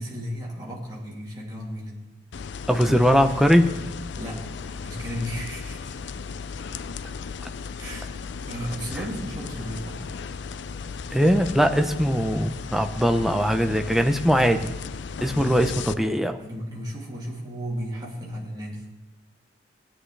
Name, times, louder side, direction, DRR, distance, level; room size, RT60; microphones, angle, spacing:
voice 1, 0.0-2.0 4.2-5.9 7.8-8.1 8.5-10.0 14.3-14.6 15.3-15.6 16.4-18.9, equal, 20° right, -5 dB, 2.7 m, -34 dB
sound 1, 2.3-15.9, left 5 dB, 65° left, 0.4 m, -36 dB
voice 2, 2.7-3.7 11.1-14.6 15.2-16.4, equal, ahead, 6 dB, 0.6 m, -20 dB
18.5 x 10.0 x 3.3 m, 1.1 s
head